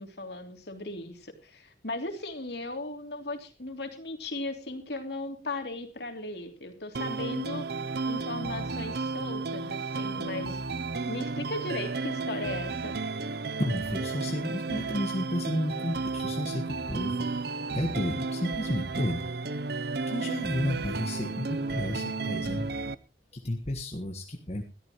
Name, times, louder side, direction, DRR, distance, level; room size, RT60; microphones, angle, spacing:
voice 1, 0.0-7.7 8.1-10.6 11.1-12.9, left 2 dB, 65° left, 5 dB, 3.1 m, -37 dB
sound 1, 6.9-22.9, right 3 dB, 60° right, 0.7 m, -33 dB
voice 2, 13.6-17.2 17.7-19.2 20.1-22.6 23.3-24.6, left 1 dB, 35° left, 3 dB, 1.5 m, -32 dB
20.5 x 13.5 x 3.1 m, 0.32 s
head